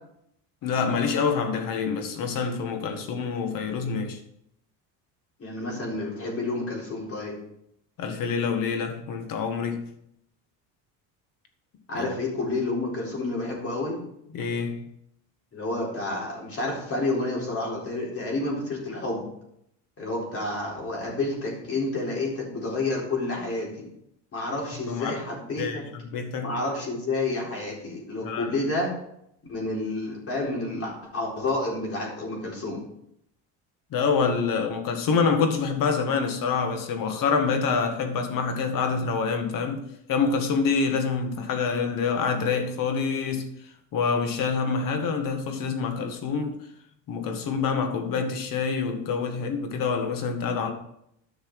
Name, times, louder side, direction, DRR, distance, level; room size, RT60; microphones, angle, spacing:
voice 1, 0.6-4.2 8.0-9.8 11.9-12.0 14.3-14.8 24.9-25.1 25.6-26.5 28.2-28.5 33.9-43.5 43.9-46.6 47.1-50.7, left 5 dB, 60° left, 1.9 m, -26 dB
voice 2, 5.4-7.4 11.9-14.0 15.5-19.2 20.0-23.9 24.3-25.8 26.4-28.9 29.5-32.8, left 2 dB, 35° left, 4.2 m, -29 dB
11.0 x 6.3 x 4.8 m
cardioid pair, 120°, 38 cm